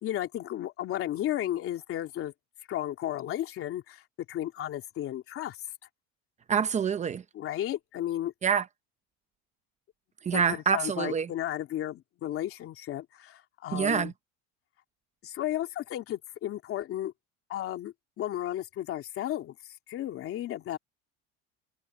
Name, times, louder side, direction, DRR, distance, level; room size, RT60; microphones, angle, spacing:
voice 1, 0.0-2.3 2.7-5.6 7.3-8.3 10.3-14.1 15.2-17.1 17.5-19.6 19.9-20.8, left 12 dB, 40° left, 3.0 m, -34 dB
voice 2, 6.5-7.2 8.4-8.6 10.3-11.3 13.7-14.1, right 7 dB, 20° right, 0.7 m, -26 dB
cardioid pair, 150°, 33 cm